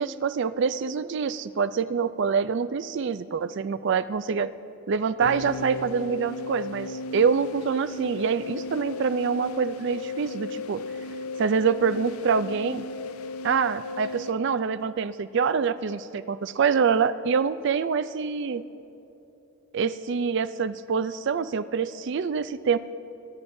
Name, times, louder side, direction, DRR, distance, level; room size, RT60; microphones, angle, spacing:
voice 1, 0.0-4.5 4.9-10.8 11.4-12.9 13.4-18.6 19.7-22.8, right 6 dB, 55° right, 14 dB, 0.4 m, -25 dB
sound 1, 5.2-14.3, left 3 dB, 85° left, 0.5 m, -36 dB
22.5 x 11.0 x 2.7 m, 2.9 s
head